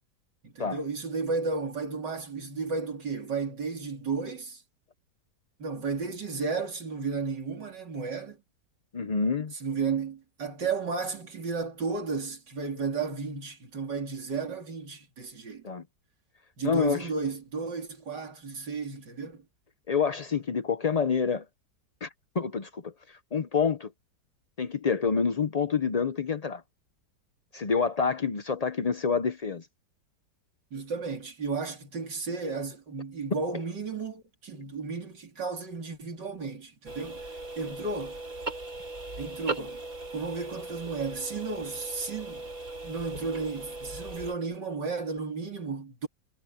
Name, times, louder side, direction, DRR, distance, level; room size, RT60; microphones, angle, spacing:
voice 1, 0.4-4.6 5.6-8.4 9.6-15.7 16.6-19.5 30.7-37.3 37.6-38.2 39.2-39.8 40.1-42.4 42.8-46.1, right 4 dB, 80° right, 3.9 m, -33 dB
voice 2, 8.9-9.5 15.6-15.8 16.6-17.1 19.9-21.4 22.0-22.1 22.3-23.9 24.6-26.6 27.5-29.7, left 5 dB, 55° left, 0.4 m, -27 dB
sound 1, 36.9-44.3, right 2 dB, 50° right, 6.1 m, -38 dB
omnidirectional pair, 1.9 m